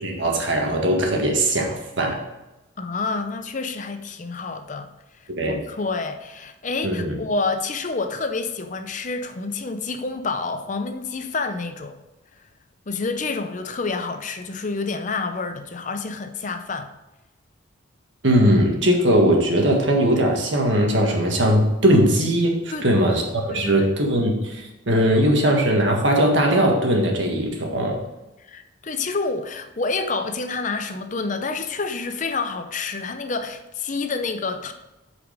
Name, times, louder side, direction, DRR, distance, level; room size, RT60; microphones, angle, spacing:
voice 1, 0.0-2.2 5.4-5.6 6.8-7.2 18.2-28.0, right 1 dB, 65° right, 1.7 m, -20 dB
voice 2, 2.8-4.9 5.5-12.0 12.9-16.9 22.7-23.2 23.5-23.9 28.4-34.7, left 3 dB, 40° left, 0.6 m, -28 dB
8.3 x 5.0 x 5.1 m
head